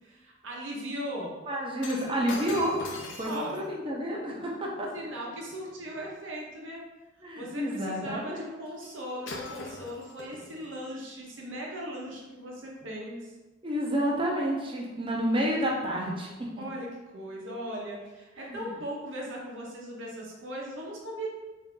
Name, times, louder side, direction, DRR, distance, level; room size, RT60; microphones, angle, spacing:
voice 1, 0.0-1.4 3.2-3.6 4.9-6.8 7.4-13.3 16.6-21.3, equal, 85° right, -3 dB, 0.9 m, -38 dB
voice 2, 1.5-2.7 3.2-4.9 7.2-8.4 13.6-16.6 18.4-18.7, equal, 25° right, -2 dB, 0.6 m, -30 dB
Shatter, 1.8-6.2 8.8-9.0 9.3-10.8 11.5-11.6, left 3 dB, 70° left, 0.6 m, -43 dB
3.4 x 2.8 x 3.7 m, 1.2 s
head